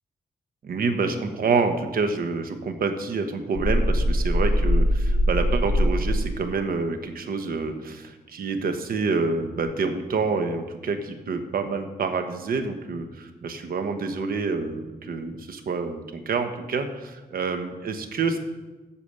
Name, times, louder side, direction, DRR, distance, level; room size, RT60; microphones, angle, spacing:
voice 1, 0.6-18.4, right 4 dB, 65° right, 7 dB, 1.1 m, -27 dB
sound 1, 3.6-6.4, equal, 35° left, 1.8 m, -22 dB
8.4 x 6.9 x 6.8 m, 1.2 s
wide cardioid pair, 115°, 16 cm